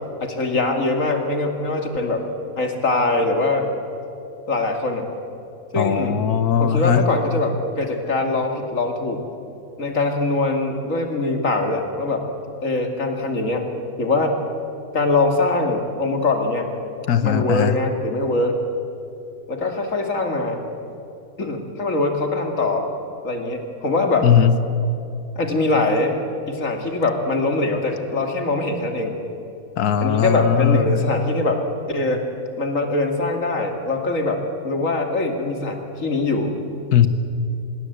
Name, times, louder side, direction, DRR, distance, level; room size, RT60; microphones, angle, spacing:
voice 1, 0.2-2.3 2.6-3.7 4.5-5.1 5.7-6.2 6.6-9.2 9.8-12.3 12.6-13.6 14.0-14.4 14.9-16.7 17.2-18.6 19.5-20.6 21.4-22.9 23.2-24.3 25.4-26.2 26.5-29.2 30.0-31.6 31.9-32.2 32.6-36.5, left 2 dB, 60° left, 4 dB, 2.7 m, -22 dB
voice 2, 5.8-7.1 17.1-17.8 24.2-24.6 29.8-31.0 36.9-37.1, left 8 dB, 90° left, 12 dB, 1.6 m, -18 dB
25.5 x 21.5 x 8.1 m, 2.7 s
omnidirectional pair, 1.6 m